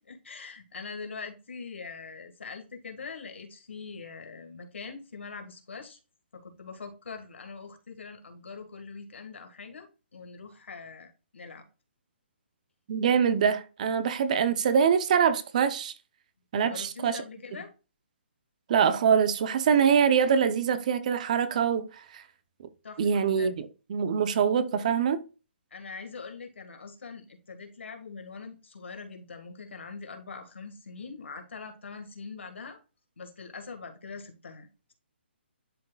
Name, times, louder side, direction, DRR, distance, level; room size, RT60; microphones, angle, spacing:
voice 1, 0.1-6.0 6.3-11.7 16.5-17.7 22.8-23.5 25.7-32.8 33.2-34.9, left 4 dB, 90° left, 1.7 m, -43 dB
voice 2, 12.9-15.9 16.5-17.2 18.7-22.2 23.0-25.2, right 7 dB, 40° right, 0.6 m, -24 dB
11.0 x 3.9 x 2.3 m
hypercardioid pair, 160°, 6 cm